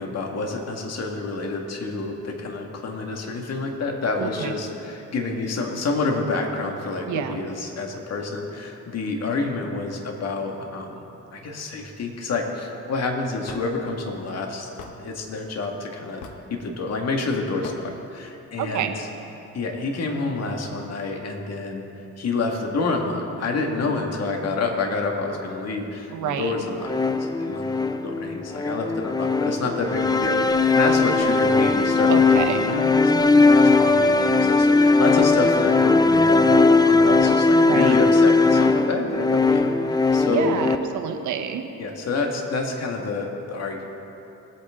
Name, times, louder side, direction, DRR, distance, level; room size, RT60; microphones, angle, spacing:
voice 1, 0.0-11.0 11.3-14.7 15.0-16.2 16.5-19.1 19.5-21.8 22.2-40.6 41.8-43.8, left 3 dB, 55° left, 1 dB, 2.0 m, -28 dB
voice 2, 4.2-4.5 7.1-7.4 18.6-18.9 26.1-26.5 32.1-32.6 37.5-37.9 40.3-41.7, right 9 dB, 75° right, 5 dB, 1.1 m, -28 dB
Hammer / Wood, 13.5-13.7 14.8-15.0 16.2-16.5 17.6-17.8, left 6 dB, 85° left, 1.2 m, -39 dB
sound 1, 26.8-40.8, left 3 dB, 15° left, 0.5 m, -19 dB
21.5 x 8.8 x 3.8 m, 3.0 s
cardioid pair, 90°, 30 cm